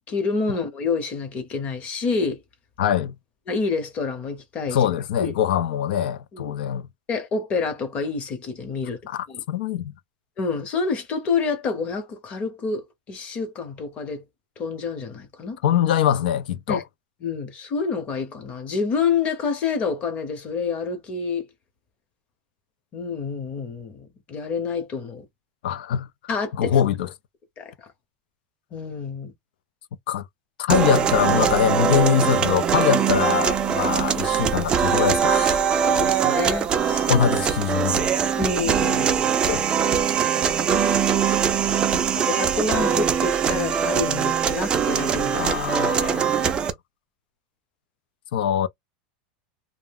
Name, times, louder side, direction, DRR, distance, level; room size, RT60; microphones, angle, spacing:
voice 1, 0.1-2.4 3.5-4.8 5.2-5.3 6.3-6.5 7.1-9.0 9.3-9.4 10.4-12.8 13.1-14.2 14.6-15.6 16.7-16.8 17.2-21.4 22.9-25.3 26.3-26.8 27.6-27.7 28.7-29.3 35.8-37.1 38.4-39.4 40.4-40.5 41.7-45.5, left 4 dB, 25° left, 0.8 m, -28 dB
voice 2, 2.8-3.1 4.7-6.9 9.1-9.9 15.6-16.8 25.6-26.1 26.5-27.1 30.1-30.2 30.6-35.7 37.1-38.1 39.5-39.6 41.9-42.0 45.3-46.6 48.3-48.7, left 9 dB, 80° left, 0.4 m, -23 dB
sound 1, 30.7-46.7, right 7 dB, 20° right, 0.3 m, -22 dB
2.3 x 2.1 x 3.4 m
supercardioid pair, 165°, 5 cm